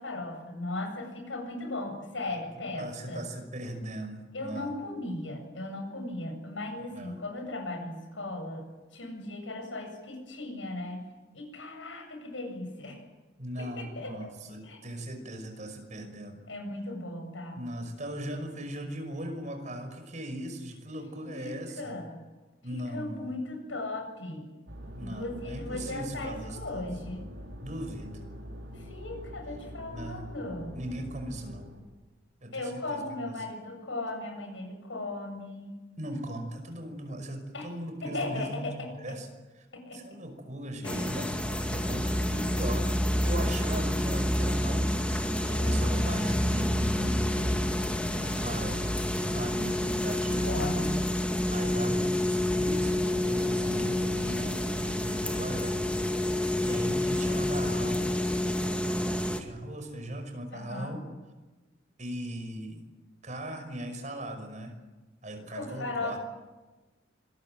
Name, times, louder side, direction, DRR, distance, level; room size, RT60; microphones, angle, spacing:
voice 1, 0.0-3.2 4.3-8.6 8.9-11.0 11.3-13.0 13.6-14.3 14.6-14.8 16.5-17.6 21.2-22.2 22.7-24.5 25.0-27.2 28.7-30.8 32.5-35.8 37.5-37.7 38.0-39.2 39.7-40.2 40.8-41.6 45.5-45.9 50.4-51.1 53.7-54.0 60.5-61.0 65.4-66.2, left 2 dB, 85° left, 4 dB, 7.9 m, -37 dB
voice 2, 2.7-4.7 6.9-7.2 13.4-16.4 17.5-22.0 22.6-23.4 25.0-26.9 27.6-28.2 29.9-30.3 30.7-31.7 32.4-33.2 36.0-38.6 39.0-39.3 39.9-43.0 43.2-47.7 48.2-48.9 49.2-50.5 51.5-55.8 56.2-58.1 58.9-61.1 62.0-62.9 63.2-64.7 65.2-66.2, right 1 dB, 40° right, 6 dB, 5.6 m, -39 dB
sound 1, 24.7-31.8, equal, 80° right, 5.1 m, -44 dB
sound 2, 40.8-59.4, left 1 dB, 5° left, 2.0 m, -28 dB
26.0 x 21.0 x 9.1 m, 1.2 s
head